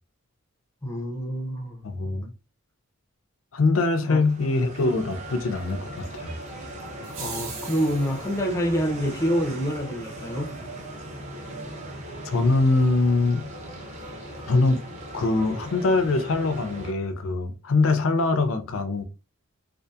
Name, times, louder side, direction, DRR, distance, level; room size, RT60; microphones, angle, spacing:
voice 1, 0.8-1.8 4.1-4.2 7.2-10.6, equal, 15° left, 0.5 m, -27 dB
voice 2, 1.8-2.3 3.5-6.4 12.2-13.4 14.5-14.8 15.1-19.0, left 3 dB, 65° left, 0.5 m, -23 dB
sound 1, 4.2-16.9, right 1 dB, 30° right, 0.6 m, -39 dB
sound 2, 7.0-8.4, right 5 dB, 70° right, 0.7 m, -38 dB
2.7 x 2.4 x 2.3 m
head